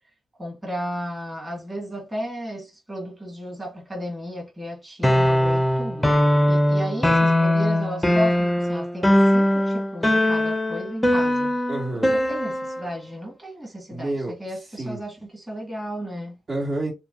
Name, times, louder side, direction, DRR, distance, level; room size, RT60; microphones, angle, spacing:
voice 1, 0.4-6.1 6.5-11.6 12.1-16.4, equal, 15° right, 2.3 m, -33 dB
sound 1, 5.0-12.9, left 1 dB, 5° left, 0.9 m, -20 dB
voice 2, 11.7-12.1 13.9-15.0 16.5-16.9, right 2 dB, 45° right, 2.2 m, -29 dB
6.9 x 2.4 x 2.8 m
cardioid pair, 85°, 0 cm